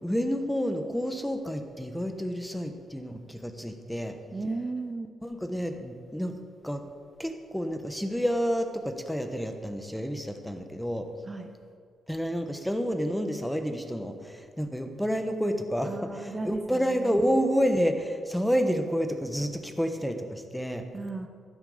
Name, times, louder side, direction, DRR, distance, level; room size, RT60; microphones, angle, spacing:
voice 1, 0.0-4.2 5.2-6.3 6.6-6.8 7.2-11.1 12.1-20.8, equal, 5° left, 6 dB, 1.0 m, -29 dB
voice 2, 4.3-5.1 11.2-11.5 15.8-17.5 20.9-21.3, right 3 dB, 25° right, 5 dB, 0.7 m, -35 dB
12.0 x 11.0 x 4.9 m, 2.1 s
cardioid pair, 105°, 0 cm